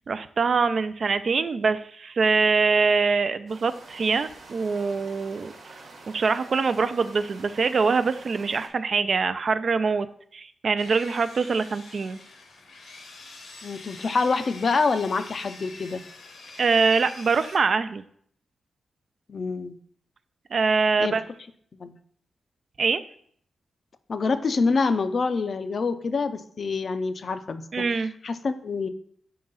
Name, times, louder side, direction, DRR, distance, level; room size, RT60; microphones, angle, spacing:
voice 1, 0.1-5.8 6.1-10.1 10.3-12.2 16.6-18.0 20.5-21.2 22.8-23.0 27.7-28.1, right 4 dB, 50° right, 12 dB, 0.3 m, -24 dB
sound 1, 3.5-8.7, right 3 dB, 80° right, 1.2 m, -47 dB
Sawing, 10.8-17.6, left 3 dB, 85° left, 1.1 m, -45 dB
voice 2, 13.6-16.0 19.3-19.8 21.0-21.1 21.8-22.0 24.1-27.6 28.2-28.9, left 4 dB, 50° left, 10 dB, 0.4 m, -26 dB
4.8 x 3.8 x 5.4 m, 0.62 s
wide cardioid pair, 105°, 0 cm